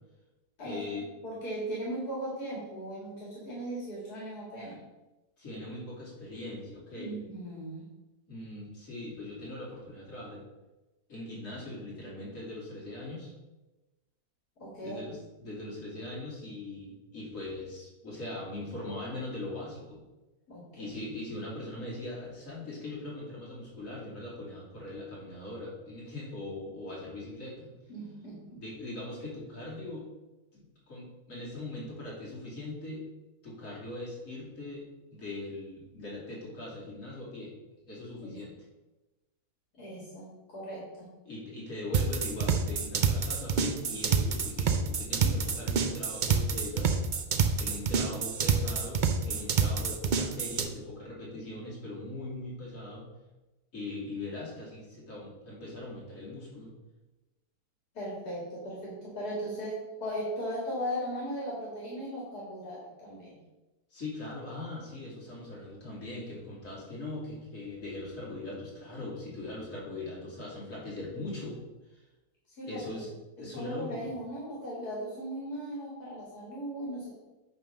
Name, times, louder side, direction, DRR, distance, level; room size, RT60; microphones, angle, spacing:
voice 1, 0.6-1.1 5.4-7.2 8.3-10.4 11.1-13.3 14.8-20.0 20.7-27.7 28.5-30.0 30.5-33.0 33.4-37.5 37.9-38.5 41.2-47.0 47.6-53.1 53.7-56.7 63.9-72.0 72.6-73.1 73.4-74.1, left 2 dB, 55° left, -6 dB, 3.0 m, -40 dB
voice 2, 1.2-4.8 7.0-7.9 14.6-15.0 20.5-21.0 27.9-28.6 38.2-38.4 39.7-41.1 45.2-45.3 57.9-63.4 72.5-73.0 73.4-77.2, equal, 75° left, -5 dB, 2.4 m, -38 dB
sound 1, 41.9-50.7, right 6 dB, 70° right, 0.4 m, -27 dB
9.0 x 3.5 x 6.1 m, 1.1 s
omnidirectional pair, 1.7 m